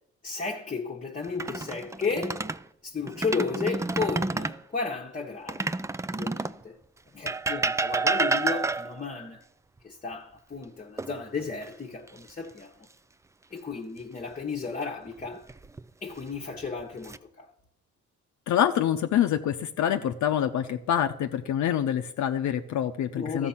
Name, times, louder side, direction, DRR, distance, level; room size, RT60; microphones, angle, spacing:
voice 1, 0.2-2.5 2.8-5.8 6.1-6.8 7.1-9.4 9.8-12.7 13.5-15.4 16.0-17.5 23.2-23.5, left 4 dB, 25° left, 1.1 m, -33 dB
sound 1, 1.2-2.6 3.1-4.6 5.5-6.6 7.3-9.1 11.0-11.7 12.1-12.3 15.2-15.8 16.5-17.2, right 3 dB, 10° right, 0.3 m, -29 dB
voice 2, 18.5-23.5, left 10 dB, 70° left, 0.7 m, -26 dB
13.0 x 7.1 x 5.7 m
cardioid pair, 90°, 30 cm